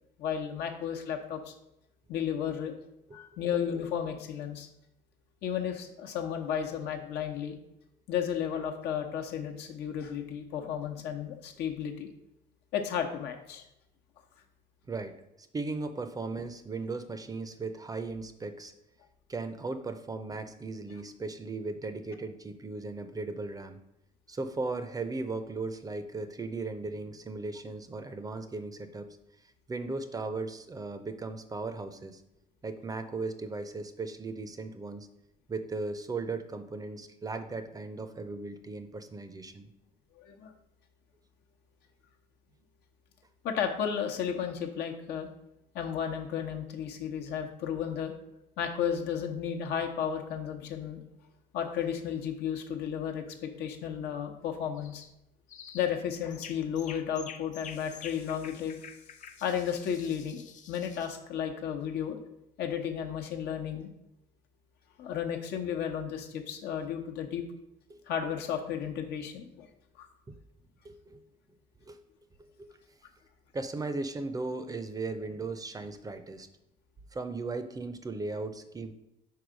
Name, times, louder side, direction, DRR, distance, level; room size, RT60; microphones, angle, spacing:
voice 1, 0.2-1.5 2.1-2.8 3.1-4.7 5.4-7.6 8.1-12.1 12.7-13.6 40.2-40.5 43.4-45.3 45.7-48.1 48.6-51.0 51.5-55.0 55.7-58.8 59.4-62.2 62.6-63.9 65.0-67.4 68.1-69.7 70.0-70.1, left 8 dB, 80° left, 4 dB, 0.9 m, -33 dB
voice 2, 15.5-18.7 19.3-23.8 24.3-29.1 29.7-32.2 32.6-35.1 35.5-39.7 67.9-68.0 70.8-71.2 71.9-72.0 72.4-72.7 73.5-76.5 77.1-78.9, right 3 dB, 20° right, 9 dB, 0.5 m, -37 dB
sound 1, 54.8-55.1 55.5-55.9 56.3-61.2, left 7 dB, 45° left, 0.5 m, -48 dB
4.7 x 4.6 x 5.0 m, 0.84 s
cardioid pair, 110°, 17 cm